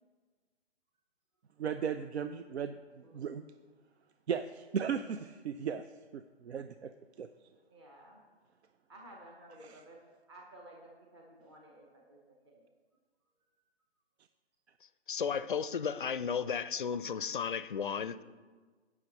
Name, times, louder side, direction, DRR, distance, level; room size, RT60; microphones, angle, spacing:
voice 1, 1.6-2.8 3.1-3.4 4.3-5.9 6.1-6.9 7.2-7.3 9.6-9.8, right 7 dB, 75° right, 0.5 m, -36 dB
voice 2, 7.7-8.2 8.9-10.0 10.3-12.7, right 1 dB, 25° right, 0.9 m, -54 dB
voice 3, 15.1-18.2, left 7 dB, 50° left, 0.4 m, -34 dB
17.5 x 6.0 x 3.0 m
hypercardioid pair, 170°, 33 cm